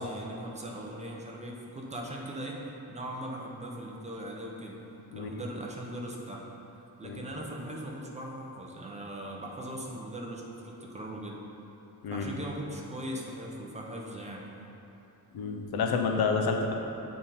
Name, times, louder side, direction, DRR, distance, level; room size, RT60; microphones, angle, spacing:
voice 1, 0.0-2.6 2.9-4.8 5.1-6.4 7.0-11.4 12.1-14.5, right 1 dB, 20° right, -2 dB, 0.7 m, -39 dB
voice 2, 15.3-16.7, left 4 dB, 80° left, 3 dB, 0.7 m, -29 dB
8.5 x 3.8 x 4.2 m, 3.0 s
wide cardioid pair, 150°, 37 cm